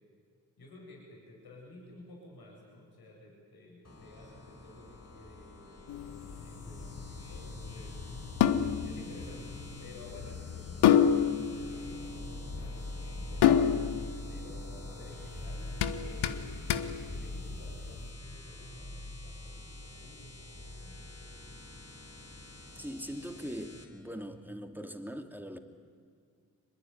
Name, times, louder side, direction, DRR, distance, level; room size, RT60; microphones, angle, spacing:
voice 1, 0.6-8.0 8.7-9.5 9.8-11.0 11.4-13.7 14.3-21.5, left 2 dB, 70° left, -2 dB, 7.8 m, -53 dB
sound 1, 3.8-23.8, left 2 dB, 40° left, 4.5 m, -52 dB
sound 2, 5.9-18.0, left 9 dB, 85° left, 1.1 m, -30 dB
sound 3, 5.9-23.0, left 1 dB, 10° left, 4.7 m, -44 dB
voice 2, 22.7-25.6, equal, 5° right, 6 dB, 2.7 m, -41 dB
24.0 x 21.0 x 9.6 m, 2.1 s
supercardioid pair, 45°, 39 cm